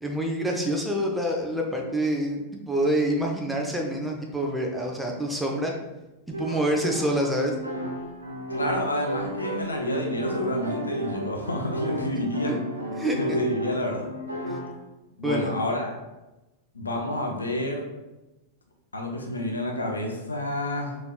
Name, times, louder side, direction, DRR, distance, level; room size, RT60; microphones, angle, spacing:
voice 1, 0.0-5.7 6.4-7.5 12.5-12.6 13.0-13.4 15.2-15.5, right 1 dB, 5° right, -1 dB, 0.7 m, -26 dB
sound 1, 6.3-14.7, equal, 80° right, 0.7 m, -33 dB
voice 2, 8.5-12.6 13.2-14.1 15.2-15.9 16.7-17.9 18.9-21.0, left 1 dB, 75° left, 1 dB, 0.6 m, -29 dB
5.1 x 3.1 x 2.3 m, 1.0 s
figure-of-eight pair, 90°, 0 cm